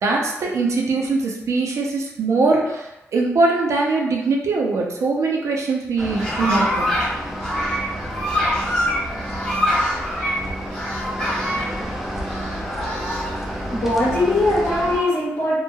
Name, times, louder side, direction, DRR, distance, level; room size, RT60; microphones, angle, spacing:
voice 1, 0.0-6.9, right 3 dB, 70° right, -1 dB, 0.5 m, -21 dB
sound 1, 6.0-7.1 7.4-10.4 10.7-11.7 12.3-13.4, equal, 15° left, 1.0 m, -24 dB
sound 2, 6.0-15.0, equal, 5° right, 0.4 m, -30 dB
voice 2, 13.3-15.6, left 1 dB, 50° left, -7 dB, 1.0 m, -21 dB
3.0 x 2.1 x 2.2 m, 0.92 s
wide cardioid pair, 145°, 5 cm